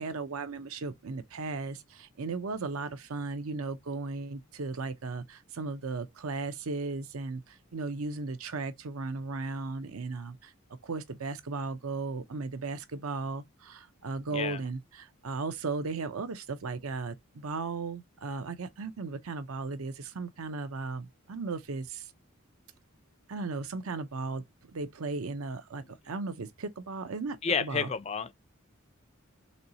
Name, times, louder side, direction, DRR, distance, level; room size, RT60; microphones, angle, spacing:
voice 1, 0.0-10.5 10.8-22.1 23.3-24.4 24.7-27.9, right 3 dB, 90° right, 0.7 m, -36 dB
voice 2, 27.4-28.3, left 5 dB, 30° left, 0.4 m, -30 dB
4.3 x 3.1 x 2.7 m
head